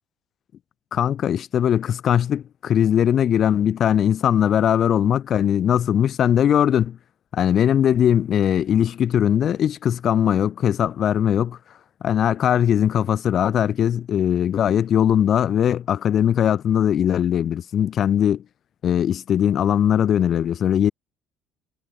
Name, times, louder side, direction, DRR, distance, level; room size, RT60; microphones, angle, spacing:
voice 1, 0.9-7.0 7.3-11.6 12.0-18.4 18.8-20.9, left 9 dB, 40° left, 0.9 m, -20 dB
cardioid pair, 160°, 0 cm